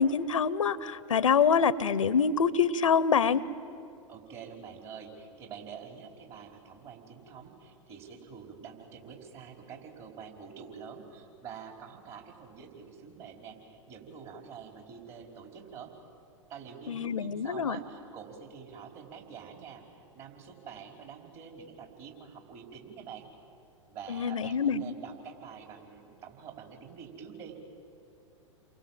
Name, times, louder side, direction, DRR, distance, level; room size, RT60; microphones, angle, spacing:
voice 1, 0.0-3.4 16.9-17.8 24.1-24.9, left 6 dB, 75° left, 19 dB, 0.9 m, -26 dB
voice 2, 4.1-15.9 16.5-23.3 23.9-27.5, right 6 dB, 40° right, 2 dB, 4.9 m, -46 dB
29.5 x 23.5 x 7.7 m, 2.7 s
figure-of-eight pair, 105°, 17 cm